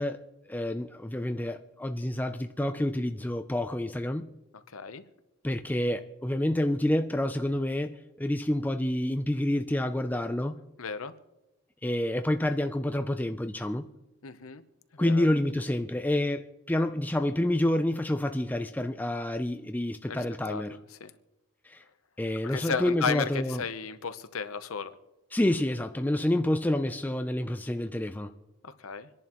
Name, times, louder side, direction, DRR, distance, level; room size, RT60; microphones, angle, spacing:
voice 1, 0.0-4.3 5.4-10.6 11.8-13.9 15.0-20.8 21.6-21.8 22.2-23.6 25.3-28.3, left 1 dB, 10° left, 0.4 m, -28 dB
voice 2, 4.7-5.0 10.8-11.1 14.2-14.6 14.9-15.3 20.1-21.1 22.4-24.9 28.6-29.1, left 5 dB, 75° left, 0.8 m, -34 dB
27.0 x 11.0 x 3.0 m
head